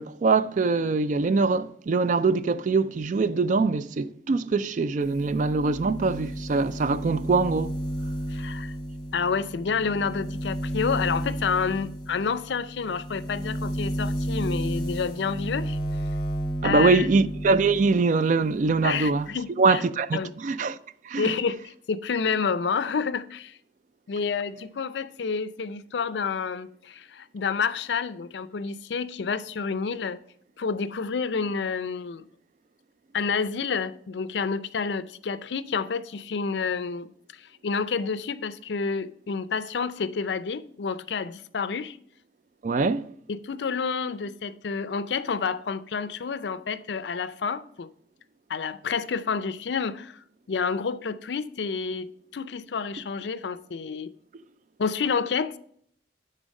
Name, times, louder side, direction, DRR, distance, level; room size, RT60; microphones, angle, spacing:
voice 1, 0.0-7.8 16.6-19.3 19.6-20.8 21.1-21.3 42.6-43.1, right 4 dB, 45° right, 0.3 m, -23 dB
sound 1, 5.0-18.0 18.3-19.3, equal, 25° left, 2.4 m, -32 dB
voice 2, 8.3-8.7 9.1-15.8 16.6-17.1 18.8-19.8 20.1-20.3 21.2-23.6 24.1-30.2 30.6-32.3 33.1-37.1 37.4-42.0 43.3-47.9 48.5-50.2 50.5-54.1 54.8-55.6, left 5 dB, 70° left, 0.5 m, -29 dB
9.9 x 3.9 x 5.2 m
head